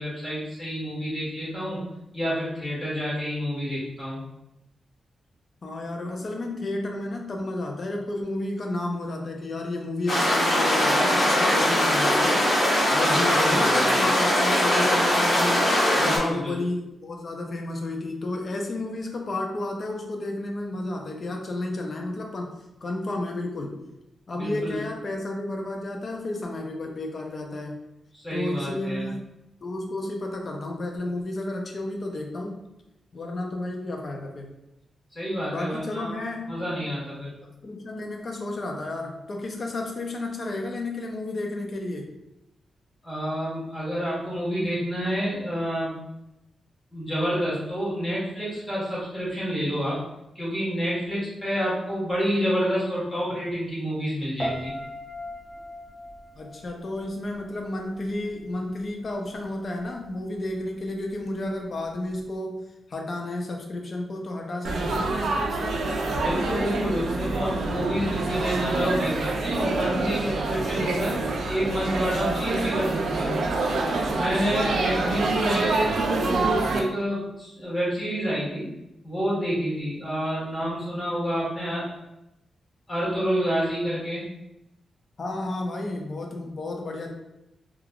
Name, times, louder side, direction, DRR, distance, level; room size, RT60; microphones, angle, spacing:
voice 1, 0.0-1.8 2.1-4.2 12.9-13.9 15.9-16.6 24.3-24.8 28.1-29.1 35.1-36.2 36.5-37.3 43.0-45.9 46.9-50.0 50.3-54.7 66.2-71.2 71.5-73.3 74.1-78.7 79.0-82.0 82.9-84.2, equal, 15° left, -8 dB, 1.2 m, -28 dB
voice 2, 5.6-12.4 12.9-15.7 16.0-22.5 22.8-23.8 24.3-27.7 28.3-29.2 29.6-32.6 33.1-34.5 35.4-36.6 37.4-42.1 56.4-62.6 62.9-65.8 85.2-87.1, left 2 dB, 35° left, 1 dB, 0.4 m, -32 dB
sound 1, 10.1-16.2, left 1 dB, 55° left, 1.2 m, -21 dB
Piano, 54.4-57.5 57.8-58.2, equal, 10° right, 0.6 m, -37 dB
Laughter / Chatter / Crowd, 64.6-76.8, right 3 dB, 70° right, 0.4 m, -26 dB
3.3 x 2.3 x 2.3 m, 0.88 s
wide cardioid pair, 160°, 0 cm